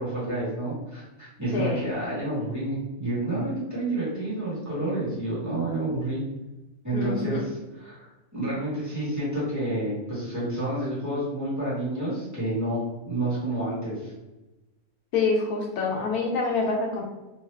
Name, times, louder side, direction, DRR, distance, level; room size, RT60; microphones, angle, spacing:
voice 1, 0.0-6.2 6.8-14.1, right 1 dB, 10° right, -10 dB, 1.3 m, -29 dB
voice 2, 1.5-1.8 6.9-7.4 15.1-17.0, left 4 dB, 75° left, 0 dB, 1.0 m, -26 dB
3.1 x 2.3 x 3.2 m, 1.1 s
omnidirectional pair, 1.7 m